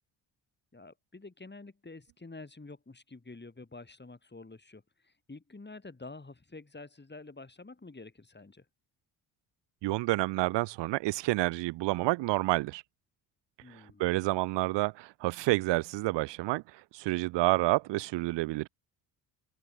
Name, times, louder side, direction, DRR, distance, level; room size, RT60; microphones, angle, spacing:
voice 1, 0.7-8.6 13.6-14.1, left 3 dB, 20° left, 6.7 m, -48 dB
voice 2, 9.8-12.8 14.0-16.6 16.9-18.7, right 20 dB, 65° right, 0.5 m, -29 dB
open air
supercardioid pair, 60°, 48 cm